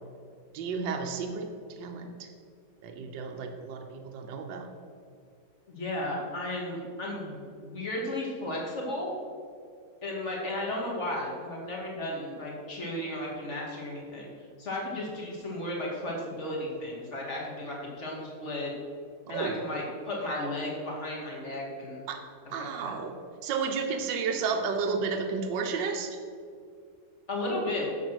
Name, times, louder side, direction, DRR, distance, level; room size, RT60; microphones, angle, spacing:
voice 1, 0.5-1.5 1.8-2.3 2.8-3.9 4.1-4.7 19.3-19.6 22.1-22.2 22.5-23.1 23.4-26.2, right 5 dB, 70° right, 4 dB, 1.6 m, -32 dB
voice 2, 5.7-9.1 10.0-14.3 14.6-18.7 19.3-22.0 22.8-22.9 27.3-27.9, left 1 dB, 35° left, -2 dB, 2.6 m, -34 dB
11.0 x 7.4 x 6.3 m, 2.3 s
omnidirectional pair, 2.1 m